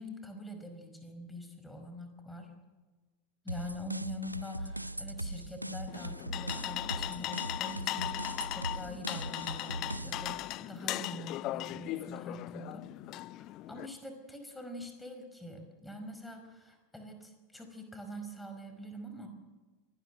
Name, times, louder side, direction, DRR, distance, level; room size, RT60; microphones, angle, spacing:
voice 1, 0.0-2.5 3.4-12.8 13.4-19.3, left 1 dB, 5° left, 5 dB, 5.2 m, -44 dB
sound 1, 3.5-10.3, right 1 dB, 90° right, 0.6 m, -40 dB
sound 2, 5.9-13.9, left 16 dB, 40° left, 0.6 m, -38 dB
24.0 x 18.5 x 8.1 m, 1.3 s
figure-of-eight pair, 85°, 0 cm